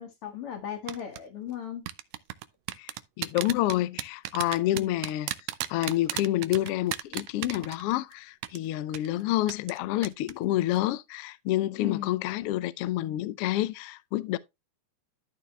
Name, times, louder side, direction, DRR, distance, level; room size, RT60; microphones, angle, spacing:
voice 1, 0.0-1.8 4.7-5.0 11.8-12.1, left 10 dB, 55° left, 2.2 m, -36 dB
sound 1, 0.9-1.2 1.9-8.1 8.4-8.6 8.9-9.1 9.5-9.8 10.0-10.3 10.6-10.8, right 14 dB, 75° right, 1.7 m, -33 dB
voice 2, 2.8-5.3 5.7-14.4, left 15 dB, 75° left, 1.3 m, -28 dB
13.0 x 4.4 x 3.3 m
omnidirectional pair, 3.3 m